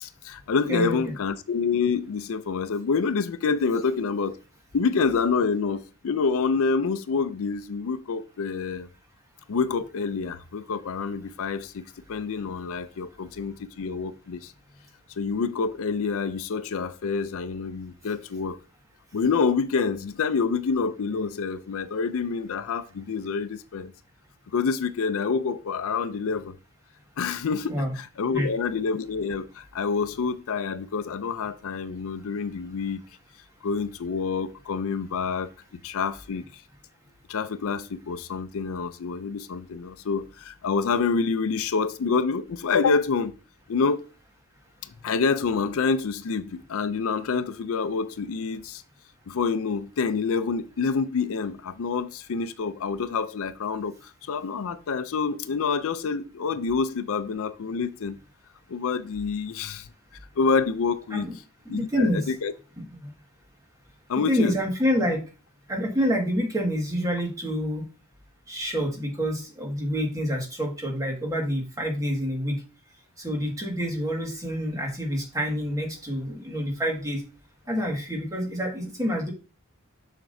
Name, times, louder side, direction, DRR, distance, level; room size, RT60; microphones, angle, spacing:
voice 1, 0.0-4.4 4.7-8.9 9.5-11.8 12.1-14.5 15.2-18.6 19.1-23.9 24.5-26.6 27.2-33.0 33.6-35.5 35.8-36.6 37.3-43.3 43.7-44.1 45.0-48.8 49.3-58.2 58.7-59.9 60.4-61.3 61.7-62.5 64.1-64.5, left 5 dB, 65° left, 0.5 m, -27 dB
voice 2, 0.7-1.1 27.7-27.9 28.3-28.5 61.1-61.3 61.7-62.3 62.8-63.1 64.2-65.2 65.7-67.8 68.5-72.6 73.2-77.2 77.7-79.3, equal, 15° right, 1.8 m, -27 dB
7.3 x 5.8 x 2.7 m
head